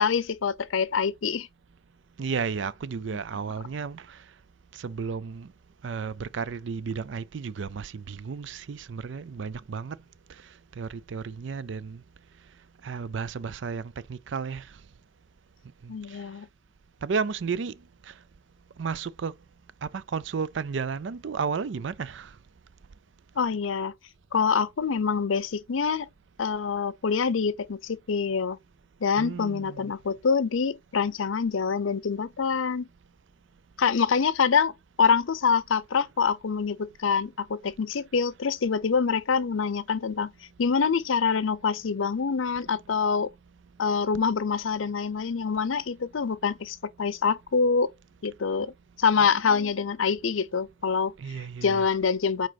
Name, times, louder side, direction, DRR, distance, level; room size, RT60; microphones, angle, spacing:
voice 1, 0.0-1.5 15.9-16.5 23.4-23.9 24.3-26.1 26.4-28.6 29.0-32.9 33.8-34.7 35.0-40.3 40.6-43.3 43.8-47.9 48.2-48.7 49.0-52.5, left 5 dB, 90° left, 0.6 m, -25 dB
voice 2, 2.2-4.2 4.7-5.5 5.8-10.0 10.8-12.0 12.8-14.7 15.8-16.2 17.0-17.8 18.1-18.2 18.8-19.3 19.8-22.3 29.2-29.9 49.2-49.9 51.2-51.8, right 5 dB, 65° right, 0.4 m, -33 dB
7.4 x 4.6 x 4.0 m
head